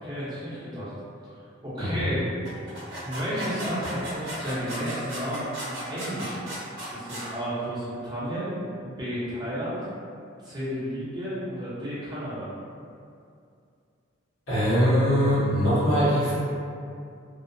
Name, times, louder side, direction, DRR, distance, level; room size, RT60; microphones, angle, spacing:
voice 1, 0.0-0.9 1.6-2.3 3.0-6.5 6.9-8.5 8.8-9.8 10.4-12.5, equal, 20° right, -11 dB, 0.7 m, -32 dB
sound 1, 2.4-7.3, equal, 60° right, 0.7 m, -35 dB
voice 2, 14.5-16.3, equal, 80° left, -12 dB, 1.1 m, -22 dB
2.7 x 2.0 x 2.5 m, 2.4 s
head